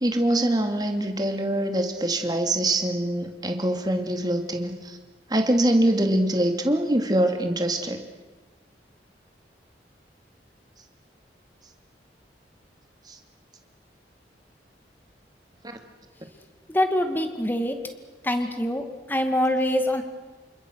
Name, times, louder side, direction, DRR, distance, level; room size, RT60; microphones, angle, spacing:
voice 1, 0.0-5.0 5.3-8.0, right 1 dB, 25° right, 5 dB, 2.6 m, -24 dB
voice 2, 16.7-17.9 18.2-20.0, left 1 dB, 10° left, 6 dB, 2.1 m, -24 dB
29.5 x 25.5 x 6.5 m, 1.3 s
head